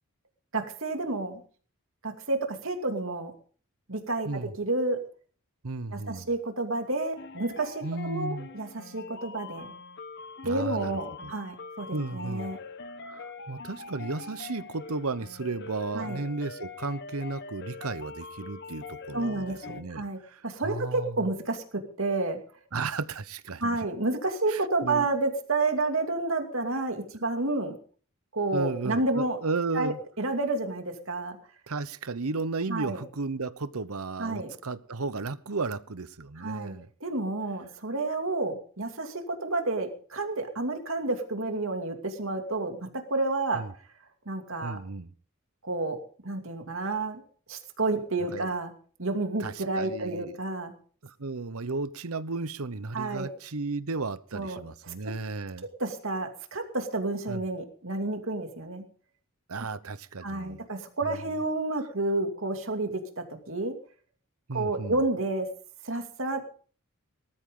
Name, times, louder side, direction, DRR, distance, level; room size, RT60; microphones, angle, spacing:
voice 1, 0.5-1.4 2.0-3.3 3.9-5.0 5.9-9.7 10.4-12.6 15.9-16.2 19.1-22.4 23.6-27.8 28.3-29.4 29.7-31.4 32.7-33.0 34.2-34.5 36.4-36.7 37.0-43.6 44.3-44.8 45.6-47.2 47.5-48.7 49.0-50.7 52.9-53.3 54.3-54.6 54.9-55.0 55.8-58.8 60.2-63.7 64.5-65.5 65.8-66.4, right 2 dB, 70° right, 5 dB, 2.6 m, -30 dB
voice 2, 5.6-6.3 7.8-8.5 10.4-10.9 11.2-11.4 11.9-12.5 13.0-21.2 22.7-23.8 24.5-25.1 28.5-30.0 31.7-36.9 43.5-43.7 44.6-45.1 48.3-48.5 49.4-50.4 51.0-55.7 57.3-57.4 59.5-60.7 61.1-61.2 64.5-65.0, right 3 dB, 85° right, 15 dB, 1.0 m, -34 dB
sound 1, 7.1-19.8, left 4 dB, 50° left, 1.0 m, -43 dB
19.5 x 13.5 x 3.9 m, 0.42 s
head